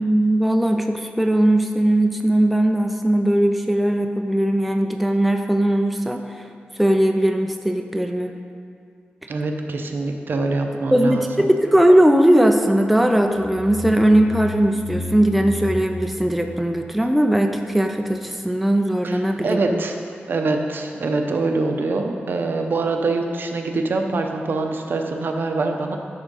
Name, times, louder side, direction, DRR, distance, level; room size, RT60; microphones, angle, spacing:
voice 1, 0.0-6.5 6.8-8.3 10.9-19.8, right 1 dB, ahead, 4 dB, 0.4 m, -19 dB
voice 2, 9.3-11.5 19.0-20.0 20.3-26.0, right 3 dB, 60° right, 4 dB, 0.7 m, -24 dB
sound 1, 13.2-17.7, left 2 dB, 35° left, 0.8 m, -33 dB
10.5 x 3.5 x 5.4 m, 2.4 s
wide cardioid pair, 125°, 4 cm